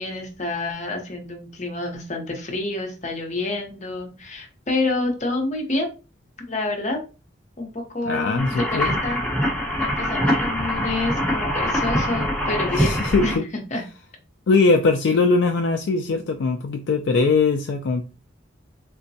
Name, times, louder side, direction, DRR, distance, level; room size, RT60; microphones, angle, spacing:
voice 1, 0.0-5.9 6.5-7.0 7.6-9.2 9.8-12.9 13.2-13.3 13.7-13.8, left 2 dB, 40° left, 2 dB, 0.8 m, -28 dB
voice 2, 8.0-9.0 12.7-13.4 14.5-18.0, left 4 dB, 65° left, 4 dB, 0.3 m, -21 dB
sound 1, 8.4-13.4, equal, 5° left, 0.9 m, -24 dB
3.8 x 2.2 x 2.6 m, 0.33 s
head